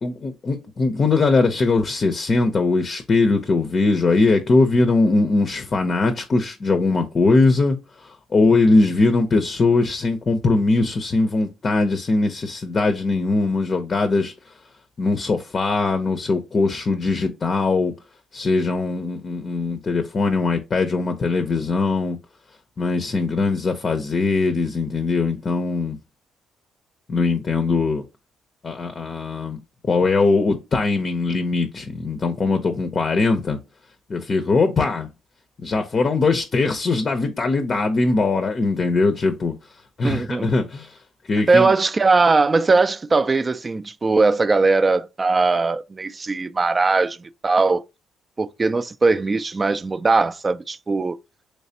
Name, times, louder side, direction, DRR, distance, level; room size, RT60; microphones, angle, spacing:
voice 1, 0.0-14.3 15.0-17.9 18.3-22.2 22.8-26.0 27.1-28.0 28.6-29.6 29.9-33.6 34.1-35.1 35.6-39.5 40.0-41.0 41.3-41.7, left 3 dB, 45° left, 0.5 m, -21 dB
voice 2, 40.0-40.5 41.5-47.8 48.4-51.2, right 3 dB, 30° right, 0.3 m, -19 dB
3.2 x 3.2 x 2.7 m
supercardioid pair, 65°, 0 cm